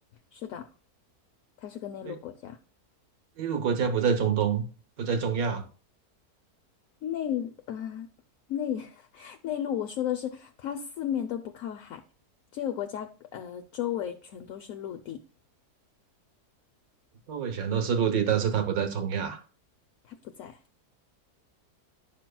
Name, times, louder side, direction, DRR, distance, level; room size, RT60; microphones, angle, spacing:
voice 1, 0.3-0.7 1.6-2.6 7.0-8.1 8.5-12.0 12.5-15.2 20.1-20.6, left 10 dB, 70° left, 6 dB, 1.0 m, -34 dB
voice 2, 3.4-4.6 5.0-5.6 17.3-19.4, right 7 dB, 65° right, 7 dB, 1.6 m, -26 dB
10.5 x 5.9 x 2.3 m, 0.38 s
omnidirectional pair, 1.7 m